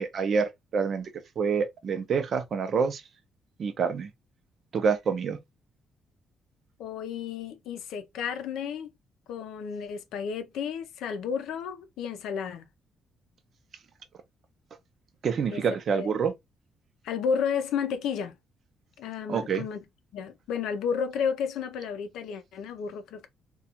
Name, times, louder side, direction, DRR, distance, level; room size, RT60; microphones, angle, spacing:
voice 1, 0.0-3.0 3.6-4.1 4.7-5.4 15.2-16.3 19.3-19.7, right 6 dB, 55° right, 0.5 m, -27 dB
voice 2, 6.8-8.9 9.3-12.7 15.5-15.6 15.9-16.1 17.0-18.4 19.0-19.8 20.1-23.3, left 7 dB, 85° left, 0.4 m, -32 dB
2.4 x 2.2 x 2.8 m
cardioid pair, 90°, 0 cm